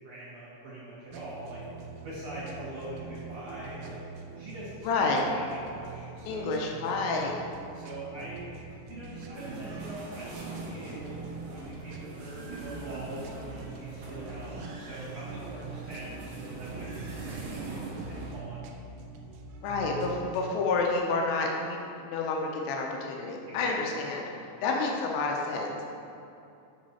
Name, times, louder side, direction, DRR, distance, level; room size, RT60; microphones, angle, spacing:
voice 1, 0.0-1.6 2.0-4.0 4.4-6.6 7.7-8.4 8.9-18.7 23.5-24.1 24.6-24.8, right 1 dB, 55° right, -9 dB, 2.1 m, -43 dB
sound 1, 1.1-20.5, right 4 dB, 85° right, 2.8 m, -44 dB
voice 2, 4.8-5.2 6.3-7.3 19.6-24.2 24.6-25.7, left 3 dB, 85° left, 0 dB, 3.0 m, -29 dB
sound 2, 9.3-18.4, right 2 dB, 70° right, 1.9 m, -42 dB
6.6 x 6.2 x 4.1 m, 2.7 s
omnidirectional pair, 4.9 m